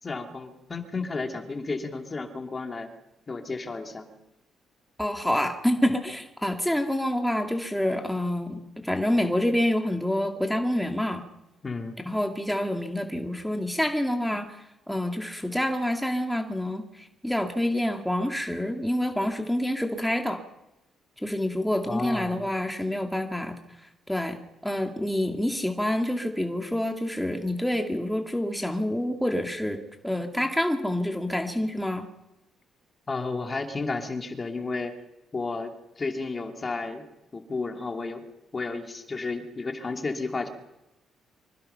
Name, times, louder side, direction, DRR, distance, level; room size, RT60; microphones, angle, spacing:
voice 1, 0.0-2.9 3.3-4.1 11.6-12.0 21.9-22.5 33.1-34.9 35.3-37.1 37.3-38.2 38.5-40.5, left 3 dB, 30° left, 4 dB, 2.8 m, -32 dB
voice 2, 5.0-11.2 12.0-20.4 21.2-23.6 23.8-24.4 24.6-29.8 30.0-32.1, left 1 dB, 5° left, 3 dB, 2.2 m, -27 dB
25.0 x 24.0 x 5.8 m, 0.92 s
cardioid pair, 90°, 0 cm